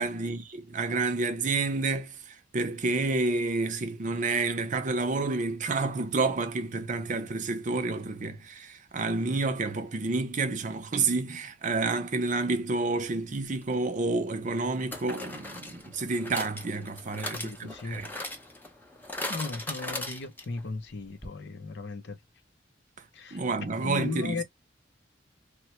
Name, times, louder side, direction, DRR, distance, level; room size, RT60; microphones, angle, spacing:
voice 1, 0.0-18.1 23.3-24.4, right 3 dB, 45° right, 0.6 m, -29 dB
sound 1, 13.6-13.7 14.9-20.7 20.9-21.0 21.2-21.3, left 1 dB, 10° left, 0.6 m, -39 dB
voice 2, 17.1-18.0 19.3-22.2 23.1-23.4 23.8-24.4, left 3 dB, 65° left, 0.6 m, -36 dB
3.1 x 2.1 x 2.9 m
head